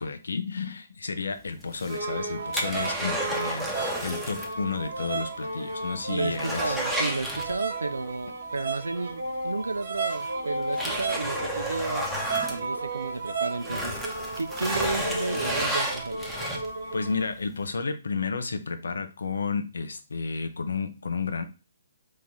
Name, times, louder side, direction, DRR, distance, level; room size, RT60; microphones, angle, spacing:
voice 1, 0.0-6.8 16.9-21.4, left 4 dB, 70° left, 0.7 m, -32 dB
sound 1, 1.6-4.6 4.9-5.0 5.4-5.5 5.9-7.9 9.3-9.4 10.1-13.2 13.5-16.9 17.4-17.5, equal, ahead, 0.9 m, -32 dB
sound 2, 1.9-17.3, right 3 dB, 65° right, 1.1 m, -34 dB
voice 2, 6.1-12.1 12.5-14.0 14.4-16.3, right 3 dB, 80° right, 0.5 m, -32 dB
4.0 x 3.1 x 3.6 m
figure-of-eight pair, 130°, 0 cm